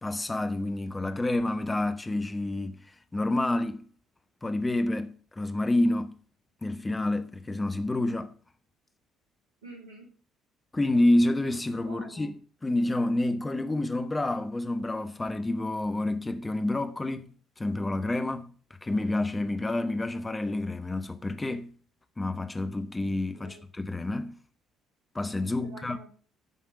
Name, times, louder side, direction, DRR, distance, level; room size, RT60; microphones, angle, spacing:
voice 1, 0.0-2.8 3.1-3.8 4.4-6.2 6.6-8.3 10.7-12.3 12.6-17.3 17.6-18.5 18.8-21.7 22.2-24.3 25.1-26.0, left 2 dB, 15° left, 1.0 m, -28 dB
voice 2, 9.6-10.1 11.8-12.4 23.3-23.6 25.6-26.1, right 3 dB, 70° right, 2.8 m, -47 dB
9.4 x 5.8 x 6.6 m
figure-of-eight pair, 50°, 0 cm